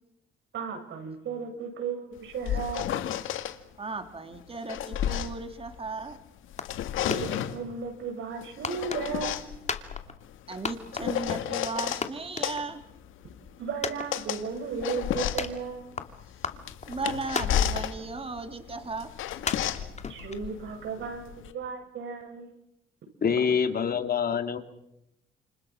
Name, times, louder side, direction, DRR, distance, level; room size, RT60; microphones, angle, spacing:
voice 1, 0.5-3.0 7.0-9.5 13.6-15.9 20.1-22.5 23.3-23.4, right 6 dB, 75° right, 5 dB, 7.8 m, -35 dB
sound 1, 2.2-3.6 4.4-6.2 6.5-7.6 8.4-12.1 12.4-21.5, left 10 dB, 85° left, 2.3 m, -32 dB
voice 2, 3.8-6.2 10.5-12.8 16.9-19.1, right 3 dB, 30° right, 7 dB, 3.3 m, -36 dB
sound 2, 6.6-6.9 7.1-7.8 8.6-9.4 9.7-10.4 10.6-11.4 11.8-11.9 12.0-13.0 13.3-13.4 13.8-14.6 15.4-16.1 16.4-17.0 17.4-18.1 18.4-18.5 19.5-20.7, left 5 dB, 35° left, 2.8 m, -34 dB
voice 3, 23.2-24.6, left 7 dB, 50° left, 8 dB, 2.9 m, -25 dB
29.5 x 29.0 x 6.4 m, 0.82 s
cardioid pair, 90°, 20 cm